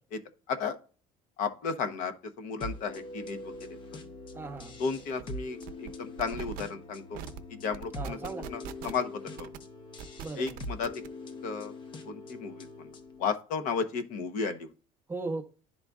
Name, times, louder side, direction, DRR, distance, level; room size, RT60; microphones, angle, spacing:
voice 1, 1.4-3.5 4.8-7.2 7.5-8.2 8.5-9.5 10.4-10.9 11.4-11.7 12.1-12.9 13.2-14.7, left 5 dB, 65° left, 0.9 m, -34 dB
sound 1, 2.6-13.3, left 1 dB, 35° left, 0.7 m, -43 dB
voice 2, 4.3-4.8 7.9-8.5 10.2-10.6 15.1-15.4, right 3 dB, 15° right, 0.7 m, -37 dB
sound 2, 4.6-4.7 5.0-5.2 5.6-5.9 6.2-6.6 7.1-7.4 7.7-9.0 9.4-9.6 10.0-11.1, right 10 dB, 80° right, 0.6 m, -41 dB
11.0 x 3.9 x 2.4 m
cardioid pair, 160°, 15 cm